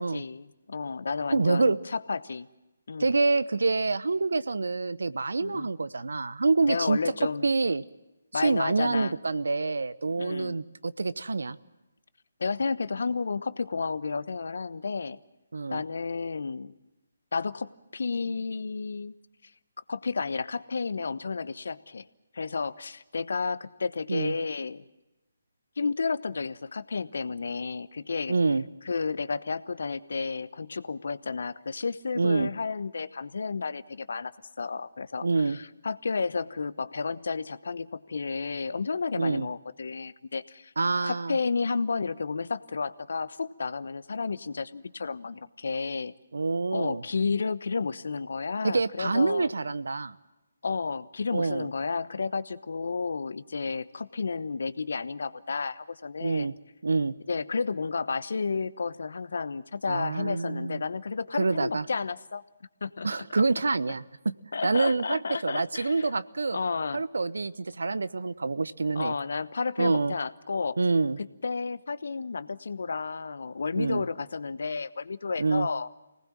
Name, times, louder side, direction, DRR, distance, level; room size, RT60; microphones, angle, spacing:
voice 1, 0.0-2.5 2.9-3.1 5.4-5.7 6.6-7.5 8.3-9.1 10.2-10.6 12.4-15.2 15.7-16.7 17.3-19.1 19.9-22.1 22.3-24.8 25.8-28.4 28.9-34.3 34.6-40.7 41.0-46.1 46.7-49.5 50.6-56.5 57.3-62.4 62.8-63.1 64.5-66.1 66.5-67.0 68.9-70.8 71.2-75.9, left 4 dB, 60° left, 16 dB, 1.0 m, -32 dB
voice 2, 1.3-1.8 3.0-7.0 7.4-7.8 8.3-11.6 15.5-15.8 24.1-24.3 28.3-28.6 32.2-32.5 35.2-35.6 39.1-39.5 40.8-41.4 46.3-47.0 48.6-50.2 51.3-51.7 56.2-56.5 56.8-57.1 59.9-60.8 61.4-61.8 63.0-64.3 64.6-66.6 66.9-69.1 69.8-70.1 70.8-71.2 73.8-74.0 75.4-75.7, right 3 dB, 70° right, 16 dB, 0.9 m, -26 dB
25.5 x 19.0 x 7.4 m, 1.0 s
figure-of-eight pair, 145°, 0 cm